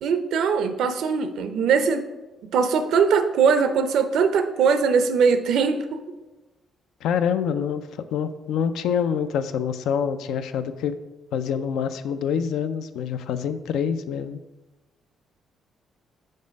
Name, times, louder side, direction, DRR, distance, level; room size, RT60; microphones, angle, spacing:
voice 1, 0.0-2.0 2.5-6.0, right 6 dB, 75° right, 9 dB, 0.5 m, -21 dB
voice 2, 7.0-11.0 11.3-14.4, left 7 dB, 85° left, 11 dB, 0.4 m, -26 dB
5.3 x 3.8 x 5.2 m, 1.1 s
cardioid pair, 90°, 0 cm